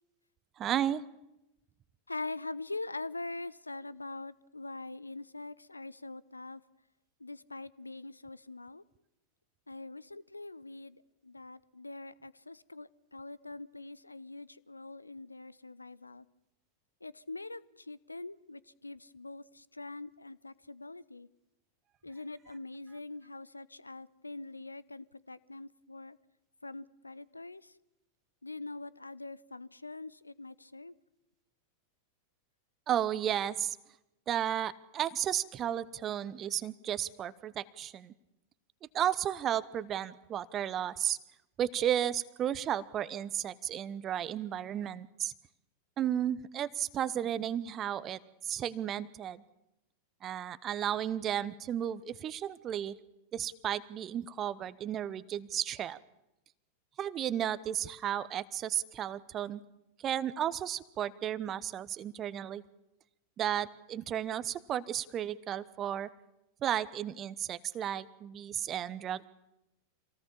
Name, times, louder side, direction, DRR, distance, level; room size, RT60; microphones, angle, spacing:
voice 1, 0.6-1.0 32.9-33.8 34.3-38.1 38.9-41.2 41.6-45.3 46.0-49.4 50.2-53.0 53.3-56.0 57.0-59.6 60.0-62.6 63.4-66.1 66.6-69.2, right 10 dB, 30° right, 17 dB, 0.9 m, -33 dB
voice 2, 2.1-6.6 7.2-8.8 9.7-16.3 17.0-21.3 22.0-26.2 26.6-27.7 28.4-31.0, left 2 dB, 80° left, 20 dB, 0.7 m, -43 dB
26.5 x 18.0 x 7.1 m, 0.91 s
figure-of-eight pair, 90°, 0 cm